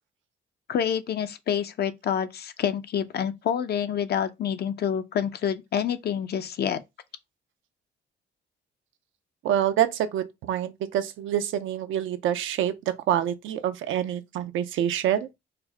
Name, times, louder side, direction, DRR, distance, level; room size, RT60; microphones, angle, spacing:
voice 1, 0.7-6.8, left 8 dB, 55° left, 0.6 m, -27 dB
voice 2, 9.4-12.7 13.1-15.3, right 10 dB, 80° right, 0.6 m, -26 dB
4.5 x 2.1 x 3.5 m
cardioid pair, 90°, 20 cm